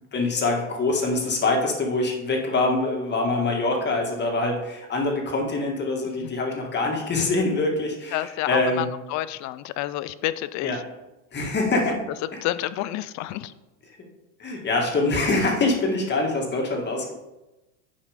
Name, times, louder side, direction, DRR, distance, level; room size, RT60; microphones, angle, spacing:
voice 1, 0.1-8.9 10.6-10.8 11.3-12.0 14.4-17.1, left 2 dB, 25° left, 1 dB, 1.9 m, -24 dB
voice 2, 8.1-10.8 12.4-13.5, left 14 dB, 45° left, 15 dB, 0.5 m, -29 dB
9.7 x 5.5 x 5.1 m, 1.0 s
cardioid pair, 145°, 42 cm